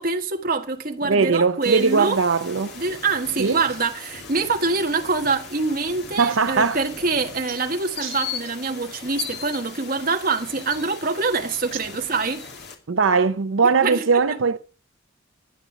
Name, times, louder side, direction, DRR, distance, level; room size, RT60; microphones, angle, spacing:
voice 1, 0.0-2.2 2.7-12.5 13.8-14.2, right 4 dB, 45° right, 1.4 m, -25 dB
voice 2, 1.1-2.7 3.4-3.6 6.2-6.8 8.0-8.1 12.9-14.6, right 5 dB, 80° right, 0.6 m, -20 dB
sound 1, 1.6-12.7, left 6 dB, 55° left, 2.7 m, -38 dB
13.0 x 9.2 x 6.0 m
head